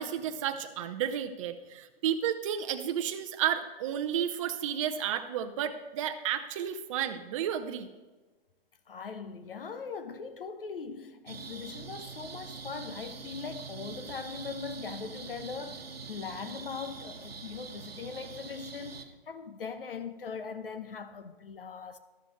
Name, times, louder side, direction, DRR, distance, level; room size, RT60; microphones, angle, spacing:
voice 1, 0.0-7.9, right 9 dB, 35° right, 0.7 m, -32 dB
voice 2, 8.9-22.0, left 5 dB, 65° left, 1.0 m, -40 dB
sound 1, 11.3-19.0, right 5 dB, 75° right, 1.2 m, -44 dB
13.5 x 12.0 x 3.2 m
figure-of-eight pair, 130°, 30 cm